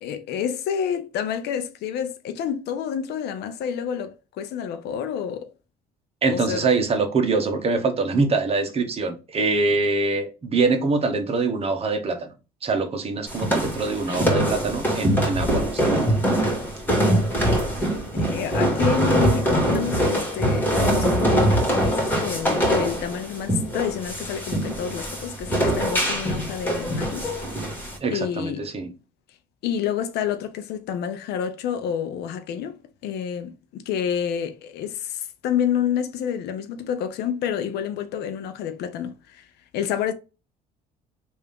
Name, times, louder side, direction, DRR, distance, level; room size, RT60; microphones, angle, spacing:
voice 1, 0.0-5.5 6.3-6.8 17.8-27.3 28.1-28.7 29.6-39.5 39.7-40.1, left 8 dB, 75° left, 0.6 m, -29 dB
voice 2, 6.2-12.3 12.6-16.0 28.0-28.9, right 3 dB, 35° right, 1.0 m, -24 dB
sound 1, 13.3-28.0, right 1 dB, 10° left, 1.8 m, -23 dB
3.4 x 2.7 x 3.5 m
cardioid pair, 110°, 17 cm